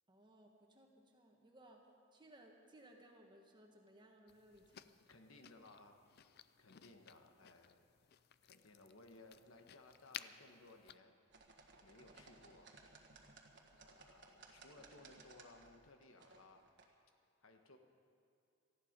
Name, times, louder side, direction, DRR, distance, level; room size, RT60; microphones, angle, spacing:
voice 1, 0.1-5.0 6.8-6.9, right 1 dB, 20° right, 1 dB, 1.6 m, -63 dB
sound 1, 4.3-11.0, left 10 dB, 50° left, 0.4 m, -57 dB
voice 2, 5.1-6.0 6.6-7.9 8.4-11.1 11.8-12.8 13.8-16.7 17.4-17.8, left 2 dB, 75° left, 5 dB, 1.4 m, -61 dB
sound 2, 11.3-16.8, right 3 dB, 55° right, 1.6 m, -61 dB
18.5 x 14.5 x 5.3 m, 2.5 s
head